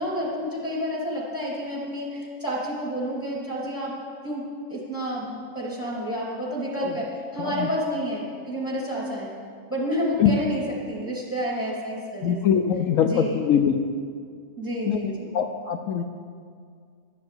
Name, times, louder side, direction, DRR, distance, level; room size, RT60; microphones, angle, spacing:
voice 1, 0.0-3.9 4.2-9.3 9.7-12.4 13.0-13.4 14.6-15.3, equal, 15° left, -4 dB, 2.9 m, -30 dB
voice 2, 12.2-13.7 14.9-16.1, left 8 dB, 75° left, 6 dB, 1.0 m, -23 dB
11.5 x 6.8 x 7.9 m, 2.1 s
omnidirectional pair, 1.4 m